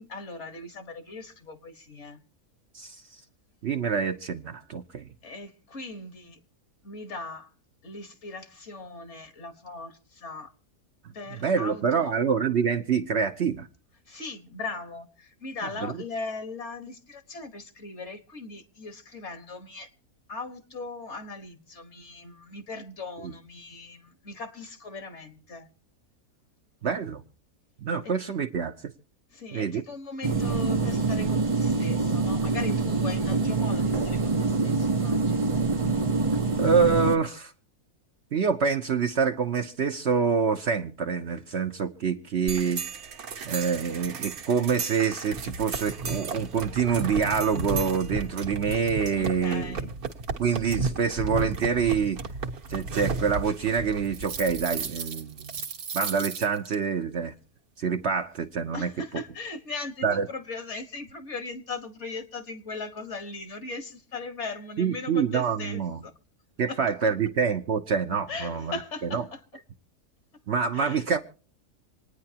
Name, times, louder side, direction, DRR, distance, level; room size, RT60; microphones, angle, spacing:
voice 1, 0.0-2.2 5.2-6.4 6.8-7.5 7.8-10.5 11.1-12.1 14.1-19.9 20.3-25.7 29.3-35.5 49.1-49.9 58.7-66.1 66.7-66.8 68.3-69.4 70.7-71.1, left 3 dB, 50° left, 1.6 m, -39 dB
voice 2, 3.6-5.1 11.4-13.7 15.8-16.0 23.2-23.3 26.8-27.2 27.8-28.9 29.5-29.8 36.6-37.5 38.3-42.8 43.5-49.9 50.4-52.2 52.7-55.7 55.9-57.3 57.8-58.9 60.0-60.3 64.8-66.0 66.6-68.7 69.1-69.2 70.5-71.2, right 6 dB, 55° right, 0.9 m, -26 dB
sound 1, 30.2-37.2, right 3 dB, 35° right, 0.5 m, -25 dB
sound 2, 42.5-56.7, right 4 dB, 75° right, 1.7 m, -34 dB
27.0 x 9.7 x 2.8 m
omnidirectional pair, 1.6 m